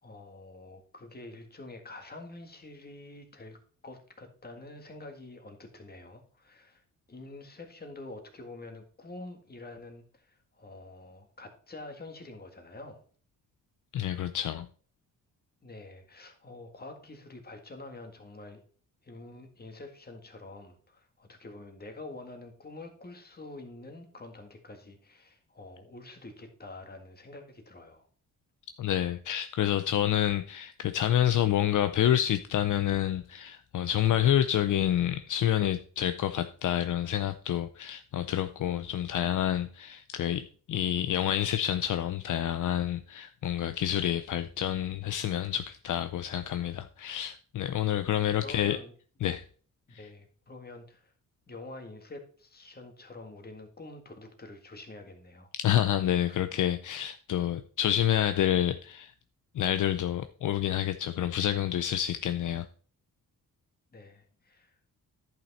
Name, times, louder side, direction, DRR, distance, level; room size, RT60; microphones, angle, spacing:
voice 1, 0.0-3.6 3.8-13.0 15.6-18.6 19.0-28.1 48.4-48.9 50.0-51.1 51.5-55.5 56.3-56.4 63.9-64.8, left 2 dB, 30° left, 1.9 m, -47 dB
voice 2, 13.9-14.7 28.8-48.8 49.2-49.4 55.6-59.1 59.5-62.7, left 11 dB, 65° left, 0.6 m, -28 dB
10.5 x 5.8 x 4.2 m
cardioid pair, 115°, 33 cm